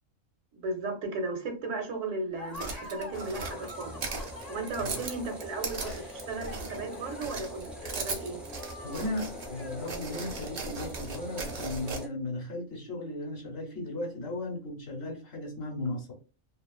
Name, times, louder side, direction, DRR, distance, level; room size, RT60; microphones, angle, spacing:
voice 1, 0.5-4.0 4.5-8.4, right 3 dB, 75° right, 1.0 m, -35 dB
Laughter, 2.3-10.6, left 2 dB, 40° left, 0.7 m, -46 dB
sound 1, 2.5-6.9 7.2-9.5 9.8-12.0, right 4 dB, 55° right, 0.6 m, -38 dB
sound 2, 3.1-12.1, equal, ahead, 0.3 m, -44 dB
voice 2, 8.8-16.1, left 2 dB, 55° left, 1.0 m, -36 dB
2.5 x 2.4 x 2.3 m
omnidirectional pair, 1.4 m